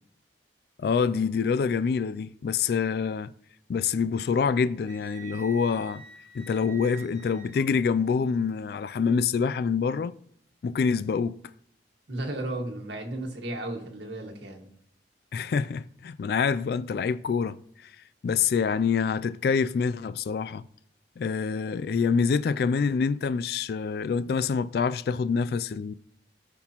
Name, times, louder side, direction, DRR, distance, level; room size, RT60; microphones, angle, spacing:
voice 1, 0.8-3.3 3.7-6.0 6.3-10.1 10.6-11.4 15.3-17.9 18.2-20.6 21.2-25.9, left 5 dB, 60° left, 0.3 m, -26 dB
Wind instrument woodwind instrument, 4.8-7.7, right 6 dB, 45° right, 2.3 m, -47 dB
voice 2, 12.1-14.6, right 1 dB, 80° right, 1.7 m, -34 dB
17.0 x 6.0 x 2.9 m
head